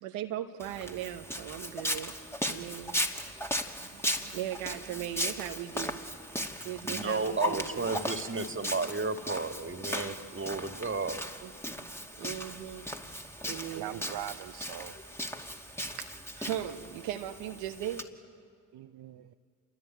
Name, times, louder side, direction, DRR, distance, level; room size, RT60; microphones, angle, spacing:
voice 1, 0.0-2.1 2.5-3.0 3.8-6.0 6.6-7.9 11.4-11.9 12.2-12.9 13.5-13.9 16.0-18.0, right 11 dB, 85° right, 1.3 m, -38 dB
Walk footsteps, 0.6-18.0, equal, 5° left, 2.4 m, -37 dB
voice 2, 6.8-11.2, right 4 dB, 25° right, 2.4 m, -33 dB
voice 3, 13.7-15.0 18.7-19.3, right 12 dB, 60° right, 0.9 m, -41 dB
27.5 x 22.5 x 9.3 m
hypercardioid pair, 50°, 43 cm